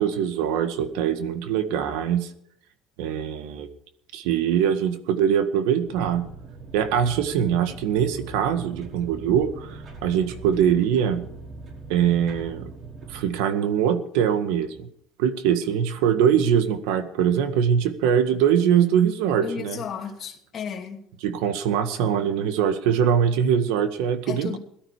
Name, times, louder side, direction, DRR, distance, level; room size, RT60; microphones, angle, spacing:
voice 1, 0.0-2.3 3.0-3.7 4.1-6.3 6.7-11.3 11.9-12.7 13.1-14.9 15.2-19.8 21.2-24.6, right 8 dB, 90° right, 1.8 m, -22 dB
sound 1, 5.9-13.3, right 3 dB, 40° right, 5.4 m, -41 dB
voice 2, 19.3-21.0 24.3-24.6, left 7 dB, 40° left, 2.8 m, -33 dB
17.5 x 13.0 x 4.9 m
cardioid pair, 135°, 0 cm